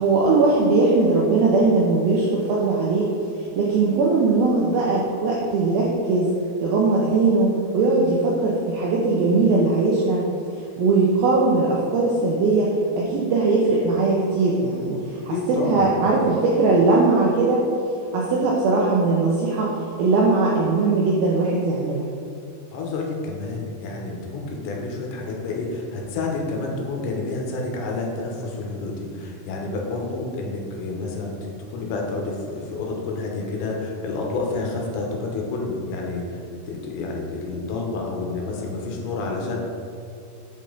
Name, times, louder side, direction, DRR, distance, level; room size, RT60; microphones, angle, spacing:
voice 1, 0.0-3.1 3.4-6.3 6.6-10.2 10.8-17.6 18.1-19.7 20.0-22.1, right 3 dB, 85° right, -4 dB, 2.1 m, -20 dB
voice 2, 15.3-16.4 22.7-31.3 31.7-36.4 36.7-39.6, left 3 dB, 85° left, -1 dB, 3.2 m, -29 dB
7.5 x 5.2 x 3.8 m, 2.6 s
omnidirectional pair, 5.1 m